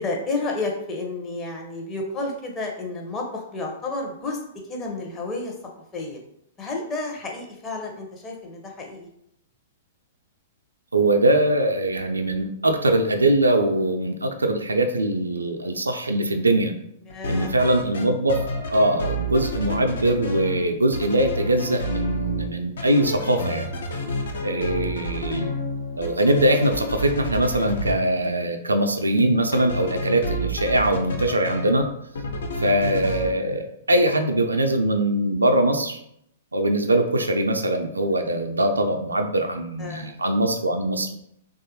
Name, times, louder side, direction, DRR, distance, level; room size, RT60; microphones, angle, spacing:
voice 1, 0.0-4.4 4.7-5.6 5.9-6.2 6.6-9.1 17.1-17.5 24.3-24.5 32.3-32.5 39.8-40.1, left 3 dB, 20° left, 0 dB, 0.6 m, -31 dB
voice 2, 10.9-16.7 17.3-18.4 18.7-23.7 24.4-25.5 26.0-31.9 32.6-36.0 36.5-41.1, right 1 dB, 80° right, 5 dB, 0.3 m, -22 dB
sound 1, 17.1-18.0 18.3-20.6 20.9-22.5 22.8-27.9 29.5-31.8 32.1-33.3, equal, 65° left, 0.5 m, -29 dB
3.1 x 2.3 x 2.8 m, 0.75 s
figure-of-eight pair, 105°, 0 cm